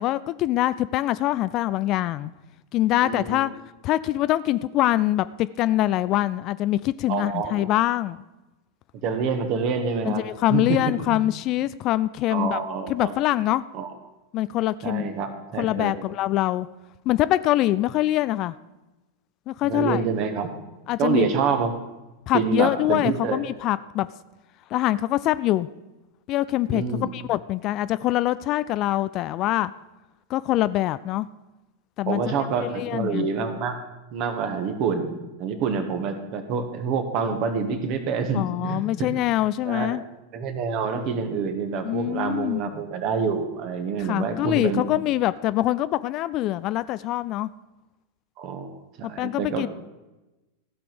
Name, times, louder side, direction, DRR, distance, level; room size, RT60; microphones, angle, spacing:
voice 1, 0.0-2.3 2.7-3.5 3.8-8.2 10.1-12.6 12.9-13.6 14.3-15.1 15.6-16.7 17.1-18.5 19.5-20.0 20.9-21.3 22.3-24.1 24.7-25.7 26.3-29.7 30.3-31.3 32.0-32.2 32.6-33.3 38.3-40.0 41.8-42.6 44.0-47.5 49.2-49.7, left 15 dB, 35° left, 16 dB, 0.3 m, -24 dB
voice 2, 3.0-3.4 7.1-7.7 9.0-10.2 10.5-10.8 11.1-11.2 12.3-13.1 13.7-13.9 14.8-15.9 19.6-20.6 21.0-21.7 22.3-23.4 26.7-27.1 32.1-33.7 34.1-39.2 39.6-40.0 40.3-44.8 48.4-48.7 49.0-49.7, right 5 dB, 40° right, 7 dB, 1.5 m, -27 dB
15.0 x 5.9 x 6.8 m, 1.0 s
figure-of-eight pair, 90°, 0 cm